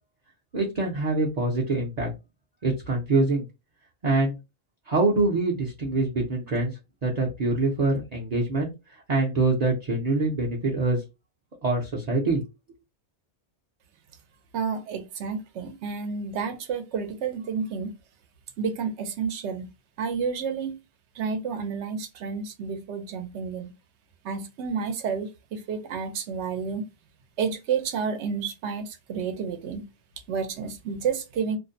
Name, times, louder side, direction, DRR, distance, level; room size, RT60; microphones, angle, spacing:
voice 1, 0.5-2.1 2.6-3.5 4.0-4.4 4.9-8.7 9.1-11.0 11.6-12.4, right 3 dB, 45° right, 0.6 m, -25 dB
voice 2, 14.5-17.9 18.6-19.7 20.0-20.8 21.1-23.7 24.2-26.8 27.4-29.9 30.3-31.6, right 6 dB, 85° right, 0.9 m, -30 dB
2.5 x 2.0 x 2.6 m
omnidirectional pair, 1.1 m